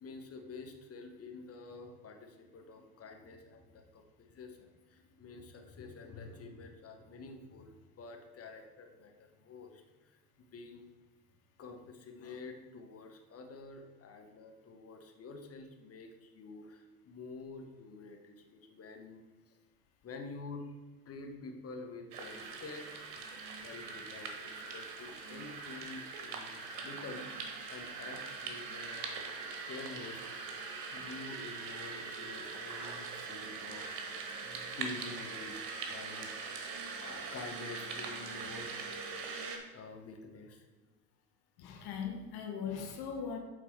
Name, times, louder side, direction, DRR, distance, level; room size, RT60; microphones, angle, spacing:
voice 1, 0.0-10.2 10.5-10.8 11.6-19.6 20.0-20.7 21.0-23.0 23.6-27.3 27.7-29.1 29.7-30.5 30.9-33.9 34.3-38.7 39.7-40.7, left 3 dB, 30° left, 3 dB, 1.2 m, -48 dB
sound 1, 22.1-39.6, right 4 dB, 65° right, 1.3 m, -42 dB
voice 2, 41.6-43.4, left 6 dB, 50° left, 3 dB, 1.3 m, -39 dB
8.4 x 4.0 x 4.5 m, 1.2 s
hypercardioid pair, 75°, 49 cm